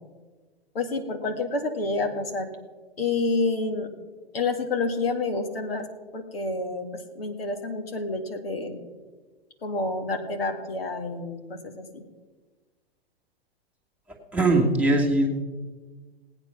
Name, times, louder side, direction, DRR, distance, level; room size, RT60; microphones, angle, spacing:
voice 1, 0.7-2.5 3.0-3.9 4.3-5.9 6.1-8.8 9.6-12.0, left 3 dB, 65° left, 4 dB, 2.1 m, -29 dB
voice 2, 14.3-15.3, right 2 dB, 5° right, 1 dB, 2.5 m, -20 dB
18.0 x 8.9 x 5.8 m, 1.3 s
figure-of-eight pair, 105°, 31 cm